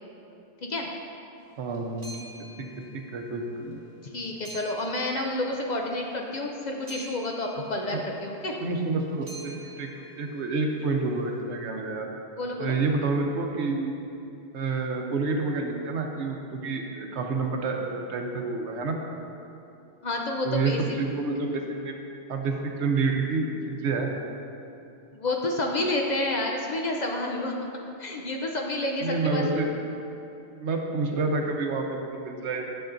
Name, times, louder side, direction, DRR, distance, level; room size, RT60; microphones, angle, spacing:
sound 1, 1.4-11.3, right 2 dB, 40° right, 0.9 m, -48 dB
voice 1, 1.6-2.3 2.9-3.8 7.9-8.0 8.6-12.1 12.6-14.0 14.5-19.0 20.4-21.9 22.3-24.1 29.0-29.7 30.5-32.7, right 3 dB, 85° right, 2 dB, 1.1 m, -28 dB
voice 2, 4.0-8.6 12.4-12.7 20.0-20.8 25.1-27.7 28.0-29.6, left 2 dB, 50° left, 1 dB, 0.6 m, -29 dB
10.0 x 7.0 x 2.6 m, 2.9 s
omnidirectional pair, 1.1 m